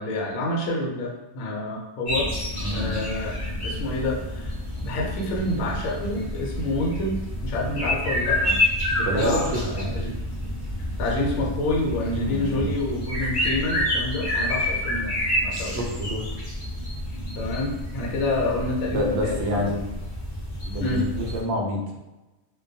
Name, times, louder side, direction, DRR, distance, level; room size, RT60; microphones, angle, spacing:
voice 1, 0.0-2.3 2.7-3.3 3.6-4.6 4.8-8.6 8.9-10.1 11.0-15.1 15.4-15.9 17.4-19.7 20.8-21.0, left 2 dB, 75° left, -2 dB, 1.0 m, -28 dB
sound 1, 2.0-21.4, left 1 dB, 35° left, 0.6 m, -29 dB
voice 2, 2.6-3.0 9.1-9.9 12.2-12.7 15.7-16.2 18.9-19.9 20.6-22.0, equal, 65° right, 0 dB, 0.7 m, -27 dB
2.2 x 2.2 x 2.6 m, 1.0 s
omnidirectional pair, 1.4 m